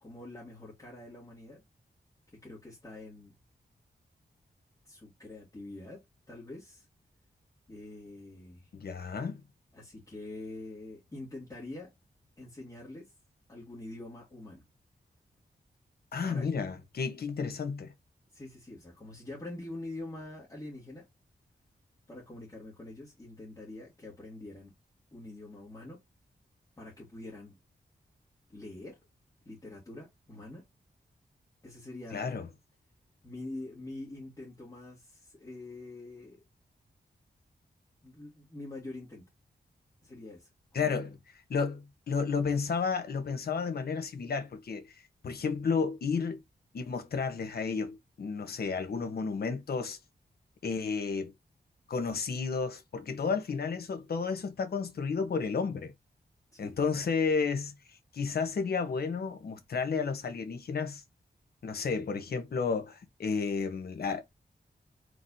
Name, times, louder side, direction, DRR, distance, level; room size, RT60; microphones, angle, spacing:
voice 1, 0.0-1.6 2.4-3.3 4.8-6.9 7.7-8.7 9.7-11.9 12.4-13.1 13.5-14.6 16.3-16.5 18.3-21.1 22.1-24.7 25.1-26.0 26.8-27.6 28.5-29.0 29.4-30.6 31.6-32.3 33.2-36.4 38.0-39.3 40.0-41.1 56.5-56.8, left 2 dB, 20° left, 2.0 m, -45 dB
voice 2, 8.7-9.4 16.1-17.9 32.1-32.5 40.7-41.2 41.5-46.4 46.7-50.0 50.6-51.3 51.9-55.9 56.6-57.8 58.1-61.0 61.6-64.2, left 5 dB, 70° left, 1.2 m, -32 dB
4.7 x 3.9 x 2.7 m
wide cardioid pair, 135°, 17 cm